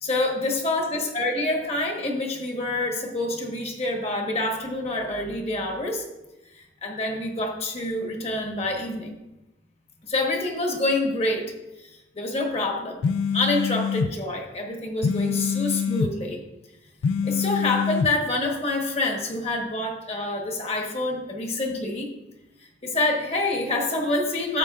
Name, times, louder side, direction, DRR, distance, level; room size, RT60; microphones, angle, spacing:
voice 1, 0.0-6.1 6.5-9.1 10.0-11.5 11.8-13.0 13.3-16.4 17.2-22.1 22.8-24.6, left 2 dB, 30° left, 2 dB, 1.1 m, -27 dB
sound 1, 13.0-14.1 15.0-16.1 17.0-18.1, left 6 dB, 75° left, 0.3 m, -25 dB
12.0 x 7.5 x 2.4 m, 1.0 s
head